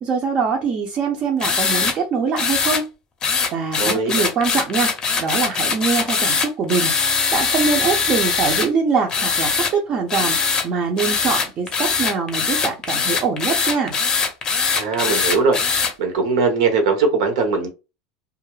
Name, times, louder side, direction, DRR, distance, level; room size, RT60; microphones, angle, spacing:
voice 1, 0.0-2.9 3.5-4.9 5.2-6.9 7.3-10.4 10.6-13.9, right 5 dB, 35° right, 0.5 m, -23 dB
sound 1, 1.4-2.0 2.4-2.8 3.2-8.7 9.1-9.7 10.1-10.7 11.0-15.9, left 5 dB, 25° left, 0.6 m, -21 dB
voice 2, 3.8-4.1 14.8-17.7, right 4 dB, 80° right, 0.8 m, -20 dB
2.3 x 2.0 x 3.0 m
supercardioid pair, 130°, 3 cm